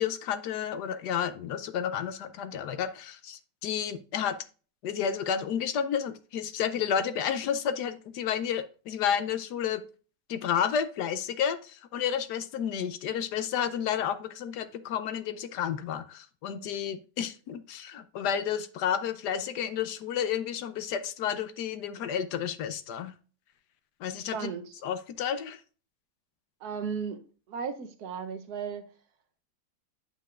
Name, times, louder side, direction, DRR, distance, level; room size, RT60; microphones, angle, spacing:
voice 1, 0.0-4.4 4.8-9.8 10.3-23.1 24.0-24.5 24.8-25.6, left 8 dB, 75° left, 1.2 m, -31 dB
voice 2, 24.3-24.8 26.6-27.2 27.5-28.8, right 6 dB, 65° right, 1.3 m, -35 dB
9.1 x 5.6 x 2.4 m
omnidirectional pair, 1.9 m